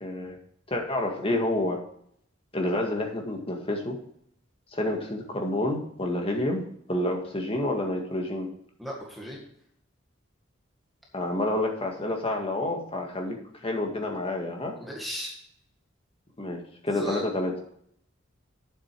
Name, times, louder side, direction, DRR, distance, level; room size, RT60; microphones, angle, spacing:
voice 1, 0.0-0.4 0.7-1.8 2.5-4.0 4.7-8.5 11.1-13.4 13.6-14.7 16.4-17.5, left 1 dB, 25° left, 2 dB, 1.8 m, -29 dB
voice 2, 8.8-9.4 14.8-15.4 16.9-17.3, equal, ahead, -3 dB, 1.8 m, -36 dB
9.3 x 7.6 x 4.7 m, 0.70 s
head